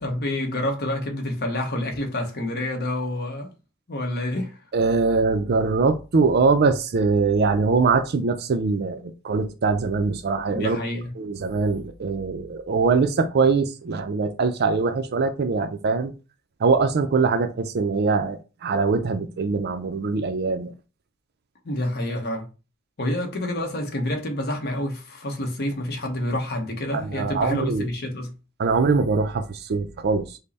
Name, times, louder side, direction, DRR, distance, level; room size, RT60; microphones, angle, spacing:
voice 1, 0.0-3.5 3.9-4.6 10.5-11.1 21.6-22.5 23.0-28.3, left 1 dB, 45° left, 1.0 m, -28 dB
voice 2, 4.7-10.8 11.2-16.1 16.6-20.7 26.9-27.9 28.6-30.4, right 4 dB, 45° right, 0.4 m, -22 dB
5.3 x 2.1 x 4.1 m
head